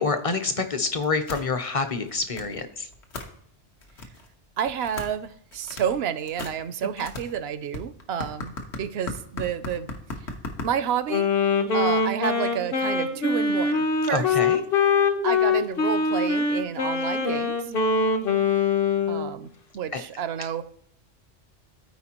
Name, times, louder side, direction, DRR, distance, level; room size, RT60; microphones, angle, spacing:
voice 1, 0.0-2.9 14.1-14.6 19.9-20.0, left 4 dB, 35° left, 8 dB, 0.7 m, -27 dB
sound 1, 0.9-1.5 1.9-2.6 2.9-3.3 3.8-4.3 4.7-5.2 5.5-6.0 6.3-11.1, left 2 dB, 75° left, 1.4 m, -36 dB
voice 2, 4.6-8.5 8.8-9.9 10.2-10.3 10.6-11.3 11.7-14.3 15.2-17.6 19.1-20.6, right 8 dB, 70° right, 13 dB, 0.8 m, -30 dB
Wind instrument woodwind instrument, 11.1-19.3, left 4 dB, 55° left, 1.0 m, -23 dB
13.5 x 4.6 x 2.9 m, 0.66 s
omnidirectional pair, 1.2 m